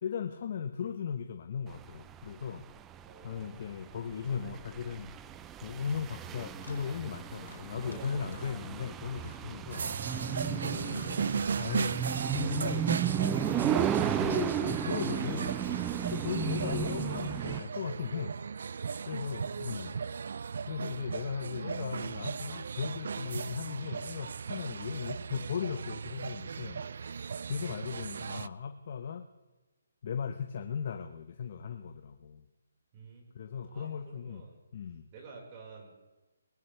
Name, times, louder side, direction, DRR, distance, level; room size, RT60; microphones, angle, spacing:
voice 1, 0.0-2.7 3.2-5.1 5.6-9.8 10.3-12.0 12.3-15.6 16.1-18.3 19.1-20.0 20.7-26.8 27.5-29.3 30.0-32.5 33.3-34.4 34.7-35.1, left 7 dB, 50° left, 7 dB, 0.9 m, -37 dB
sound 1, 1.8-17.6, right 9 dB, 15° right, 0.6 m, -34 dB
voice 2, 3.0-3.7 7.8-8.4 9.4-9.6 18.9-20.0 27.2-27.5 32.9-33.3 33.6-34.6 35.1-35.9, right 4 dB, 30° right, -1 dB, 4.8 m, -51 dB
sound 2, 5.9-6.0 6.6-6.8 7.4-8.0 8.2-8.6 9.1-9.4 10.0-10.3 10.7-11.2 11.6-12.0, left 4 dB, 80° left, 4.3 m, -54 dB
sound 3, 9.7-28.5, right 6 dB, 60° right, 0.4 m, -37 dB
20.0 x 19.5 x 3.4 m, 1.2 s
hypercardioid pair, 150°, 0 cm